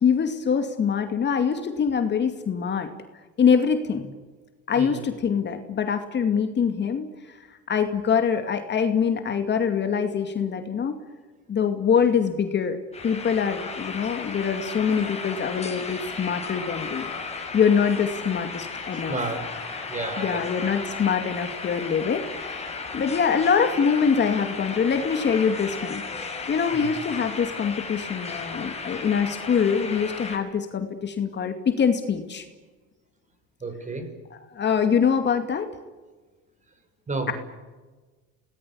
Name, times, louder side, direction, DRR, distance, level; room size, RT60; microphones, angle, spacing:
voice 1, 0.0-2.9 3.4-4.1 4.7-7.4 7.7-11.0 11.5-12.8 13.0-17.1 17.5-19.2 20.2-26.0 26.5-32.5 34.3-35.7, left 6 dB, 35° left, 6 dB, 2.4 m, -24 dB
sound 1, 12.9-30.4, left 4 dB, 20° left, 5.5 m, -35 dB
voice 2, 19.1-19.4 19.9-20.3 26.7-26.9 33.6-34.0 37.1-37.3, right 3 dB, 25° right, 8 dB, 6.0 m, -31 dB
30.0 x 19.0 x 8.7 m, 1.3 s
cardioid pair, 125°, 31 cm